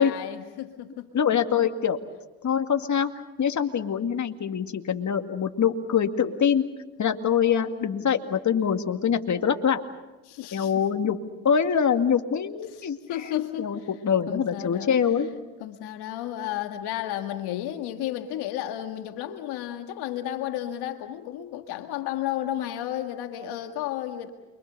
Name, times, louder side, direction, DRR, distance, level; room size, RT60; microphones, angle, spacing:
voice 1, 0.0-1.1 10.2-10.8 12.7-12.8 13.1-13.9 14.3-14.9 15.3-15.4 15.6-24.3, left 12 dB, 80° left, 6 dB, 1.7 m, -32 dB
voice 2, 1.1-2.0 2.4-3.1 3.4-6.6 7.0-9.8 10.5-11.2 11.4-13.3 13.6-15.3, left 7 dB, 50° left, 6 dB, 2.2 m, -24 dB
29.0 x 24.0 x 6.9 m, 1.1 s
supercardioid pair, 65°, 39 cm